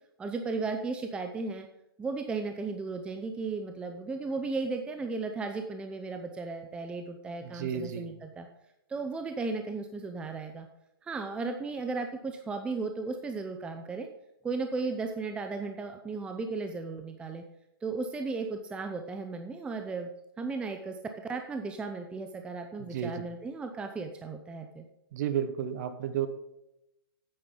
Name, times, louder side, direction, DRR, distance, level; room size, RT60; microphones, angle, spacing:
voice 1, 0.2-1.7 2.0-8.5 8.9-10.7 11.0-14.1 14.4-17.4 17.8-20.1 20.4-24.9, right 4 dB, 10° right, 5 dB, 0.6 m, -35 dB
voice 2, 7.4-8.1 22.9-23.1 25.1-26.3, right 9 dB, 45° right, 11 dB, 1.1 m, -32 dB
9.7 x 8.6 x 3.8 m, 0.88 s
hypercardioid pair, 130°, 13 cm